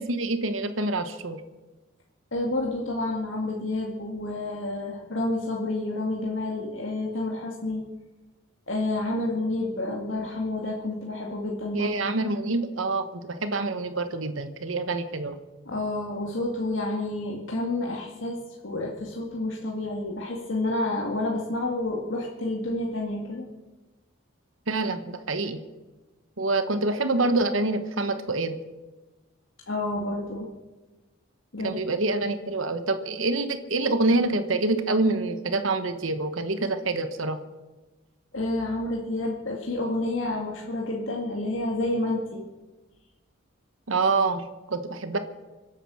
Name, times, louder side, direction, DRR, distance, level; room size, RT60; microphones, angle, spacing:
voice 1, 0.0-1.4 11.7-15.4 24.7-25.6 26.4-28.6 31.6-37.4 43.9-45.2, right 2 dB, 85° right, 9 dB, 1.2 m, -26 dB
voice 2, 2.3-7.8 8.7-11.9 15.7-23.4 29.7-30.5 31.5-31.8 38.3-42.4, left 2 dB, 80° left, -2 dB, 2.2 m, -29 dB
25.5 x 8.9 x 6.4 m, 1.2 s
head